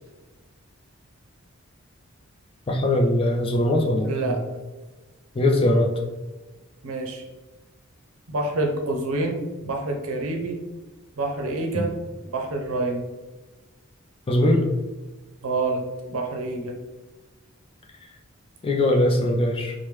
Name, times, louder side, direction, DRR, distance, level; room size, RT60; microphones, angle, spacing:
voice 1, 2.7-4.5 5.3-5.9 11.7-11.8 14.3-14.7 18.6-19.7, left 1 dB, 25° left, 1 dB, 0.4 m, -21 dB
voice 2, 4.0-4.4 6.8-7.2 8.3-10.6 11.2-11.9 12.3-13.0 15.4-16.8, right 2 dB, 80° right, 2 dB, 0.6 m, -27 dB
3.2 x 2.1 x 3.0 m, 1.2 s
head